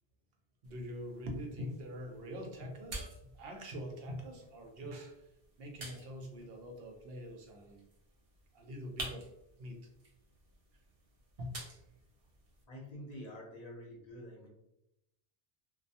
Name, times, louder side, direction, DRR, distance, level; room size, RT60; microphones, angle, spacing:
sound 1, 0.6-12.6, right 2 dB, 45° right, 0.5 m, -51 dB
voice 1, 0.6-3.1 3.3-5.3 5.6-7.8 8.5-9.3 9.6-9.8 11.4-11.6, equal, 75° right, 2 dB, 0.8 m, -44 dB
voice 2, 12.7-14.5, equal, 45° left, -3 dB, 0.8 m, -47 dB
2.3 x 2.2 x 2.7 m, 0.86 s
omnidirectional pair, 1.0 m